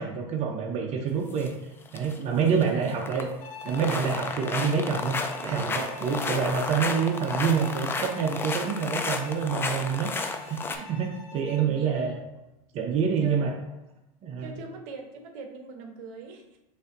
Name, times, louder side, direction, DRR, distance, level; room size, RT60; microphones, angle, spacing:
voice 1, 0.0-1.5 1.9-3.3 3.6-12.1 12.7-13.5 14.2-14.6, right 6 dB, 35° right, 0 dB, 0.6 m, -27 dB
sound 1, 1.3-1.5 1.9-2.2 2.5-3.3 3.6-10.8, left 3 dB, 10° left, 0.3 m, -32 dB
voice 2, 2.4-3.0 6.0-6.2 11.6-12.2 13.2-13.5 14.4-16.6, right 4 dB, 60° right, 3 dB, 0.8 m, -40 dB
Bowed string instrument, 3.4-11.8, left 3 dB, 75° left, 0.8 m, -45 dB
6.3 x 2.6 x 2.6 m, 0.97 s
supercardioid pair, 115°, 18 cm